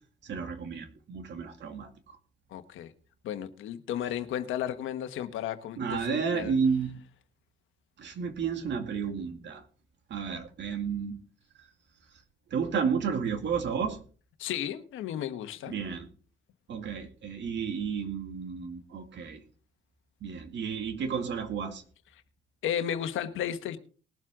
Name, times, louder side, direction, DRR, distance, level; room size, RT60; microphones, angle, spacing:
voice 1, 0.2-2.2 5.8-7.0 8.0-9.6 10.1-11.2 12.5-14.0 15.7-16.1 16.7-19.4 20.2-21.8, right 6 dB, 65° right, 2.4 m, -32 dB
voice 2, 2.5-2.9 3.2-6.6 14.4-15.7 22.6-23.8, left 10 dB, 85° left, 1.3 m, -33 dB
20.5 x 7.5 x 3.7 m
cardioid pair, 90°, 20 cm